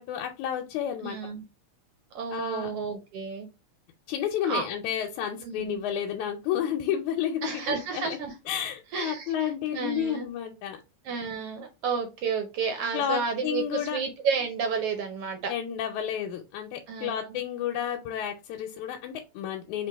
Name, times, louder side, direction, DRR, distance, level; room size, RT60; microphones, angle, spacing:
voice 1, 0.0-1.2 2.3-2.7 4.1-8.2 8.5-10.8 12.9-14.0 15.5-19.9, left 9 dB, 90° left, 2 dB, 2.1 m, -31 dB
voice 2, 1.0-1.4 2.1-3.5 4.5-4.7 5.4-5.8 7.4-8.3 8.9-10.3 11.0-15.5 16.9-17.4, right 5 dB, 70° right, 5 dB, 1.5 m, -31 dB
4.5 x 3.5 x 3.4 m, 0.27 s
omnidirectional pair, 3.3 m